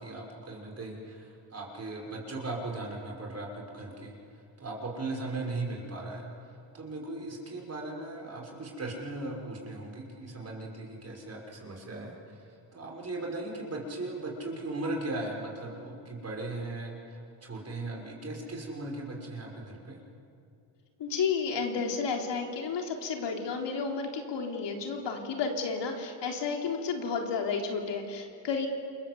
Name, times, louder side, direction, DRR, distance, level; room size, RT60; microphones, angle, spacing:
voice 1, 0.0-4.1 4.6-6.3 6.7-12.1 12.7-16.9 17.4-20.0, right 2 dB, 30° right, -1 dB, 6.1 m, -38 dB
voice 2, 21.0-28.7, left 5 dB, 60° left, 2 dB, 3.8 m, -32 dB
28.5 x 22.5 x 8.2 m, 2.5 s
cardioid pair, 110°, 47 cm